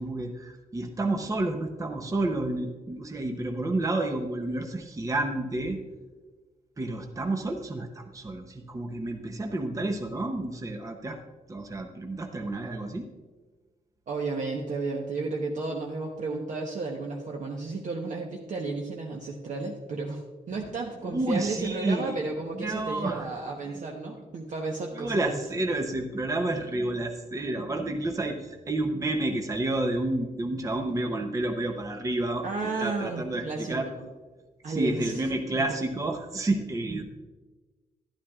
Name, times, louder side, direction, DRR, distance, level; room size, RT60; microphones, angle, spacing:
voice 1, 0.0-5.8 6.8-11.2 11.5-13.1 20.5-20.6 21.0-22.3 22.5-23.3 24.9-32.5 32.8-33.9 34.7-37.0, right 2 dB, 20° right, 4 dB, 0.7 m, -30 dB
voice 2, 14.1-25.4 32.4-34.1 34.6-35.2, right 3 dB, 55° right, -1 dB, 0.9 m, -33 dB
11.5 x 11.5 x 2.4 m, 1.2 s
wide cardioid pair, 145°, 16 cm